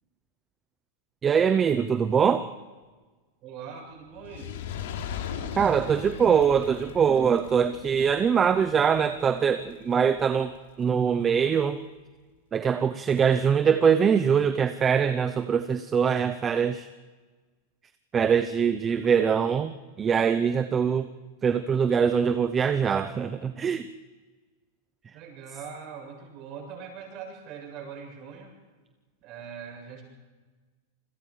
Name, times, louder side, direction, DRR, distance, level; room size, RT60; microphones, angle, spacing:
voice 1, 1.2-2.5 5.6-11.8 12.5-16.9 18.1-21.1 21.4-23.9, right 7 dB, 15° right, 11 dB, 0.7 m, -23 dB
voice 2, 3.4-4.6 25.1-28.5 29.2-30.0, right 6 dB, 35° right, 2 dB, 7.8 m, -41 dB
Fire, 4.1-10.6 11.2-11.3, left 8 dB, 75° left, 3.2 m, -39 dB
28.0 x 22.0 x 4.9 m, 1.3 s
supercardioid pair, 165°, 0 cm